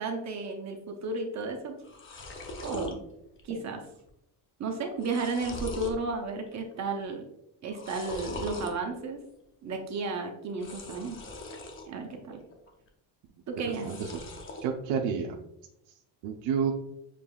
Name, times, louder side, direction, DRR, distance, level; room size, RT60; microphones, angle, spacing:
voice 1, 0.0-1.8 2.6-3.0 3.4-3.8 4.6-7.2 7.6-9.2 9.6-11.2 11.9-12.4 13.5-13.9, right 3 dB, 40° right, 3 dB, 0.7 m, -33 dB
sound 1, 1.4-1.5 1.7-2.9 3.4-3.8 4.1-4.2 4.7-6.0 6.5-6.9 7.7-8.7 10.5-11.9 12.3-12.9 13.6-14.7, left 2 dB, 30° left, 0.7 m, -41 dB
voice 2, 13.6-14.2 14.6-15.4 16.2-16.7, right 7 dB, 75° right, 1 dB, 0.7 m, -30 dB
6.8 x 3.0 x 2.3 m, 0.83 s
cardioid pair, 140°, 45 cm